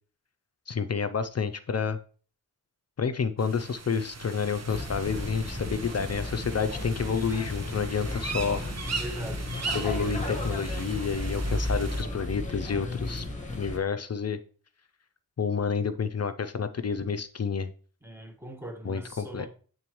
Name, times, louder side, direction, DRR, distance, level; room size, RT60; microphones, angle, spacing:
voice 1, 0.7-2.0 3.0-8.6 9.7-13.3 13.6-14.4 15.4-17.7 18.8-19.5, left 6 dB, 40° left, 10 dB, 0.5 m, -29 dB
sound 1, 3.4-12.0, right 4 dB, 45° right, 0.9 m, -39 dB
sound 2, 4.7-13.8, left 1 dB, 20° left, 1.5 m, -34 dB
voice 2, 8.9-9.5 18.0-19.5, right 1 dB, 5° right, 2 dB, 1.5 m, -40 dB
8.5 x 3.8 x 3.1 m, 0.41 s
cardioid pair, 65°, 38 cm